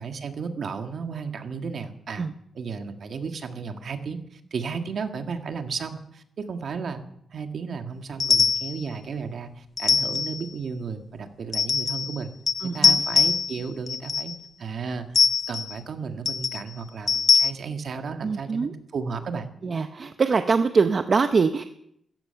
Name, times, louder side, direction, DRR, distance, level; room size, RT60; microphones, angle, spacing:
voice 1, 0.0-2.3 2.6-7.0 7.3-12.3 12.6-14.3 14.6-19.5, right 5 dB, 60° right, 6 dB, 1.8 m, -34 dB
sound 1, 8.2-8.8 9.8-10.4 11.5-12.2 12.5-13.6 13.9-14.4 15.2-15.7 16.3-16.6 17.1-17.5, left 5 dB, 50° left, 0.6 m, -22 dB
voice 2, 12.6-13.0 18.2-18.7 19.6-21.6, right 5 dB, 40° right, 8 dB, 0.8 m, -23 dB
16.0 x 14.5 x 5.8 m, 0.73 s
wide cardioid pair, 125°, 0 cm